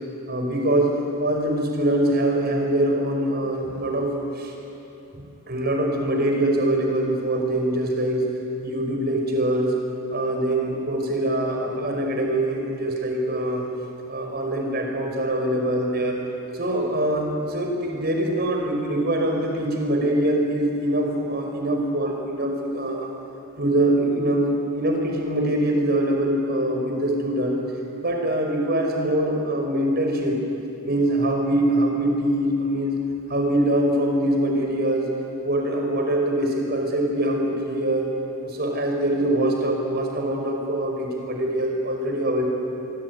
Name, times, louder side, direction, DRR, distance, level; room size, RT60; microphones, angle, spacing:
voice 1, 0.3-4.5 5.1-8.2 8.6-9.7 10.1-13.6 14.1-16.2 16.5-23.1 23.6-27.6 28.0-30.4 30.8-33.0 33.3-35.1 35.4-38.1 38.4-42.5, right 1 dB, 50° right, 2 dB, 5.4 m, -23 dB
25.5 x 23.5 x 9.7 m, 2.9 s
head